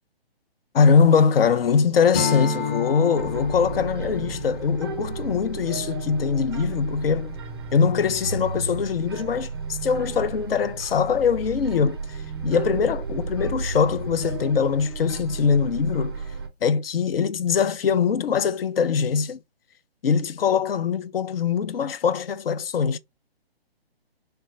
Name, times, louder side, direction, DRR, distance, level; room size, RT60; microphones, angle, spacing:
voice 1, 0.7-7.4 7.7-12.2 12.4-16.1 16.6-19.4 20.0-23.0, left 6 dB, 65° left, 0.5 m, -22 dB
Strum, 2.1-6.8, left 5 dB, 20° left, 0.7 m, -31 dB
sound 1, 3.2-16.5, right 4 dB, 25° right, 0.4 m, -33 dB
3.3 x 2.1 x 3.6 m
figure-of-eight pair, 140°, 31 cm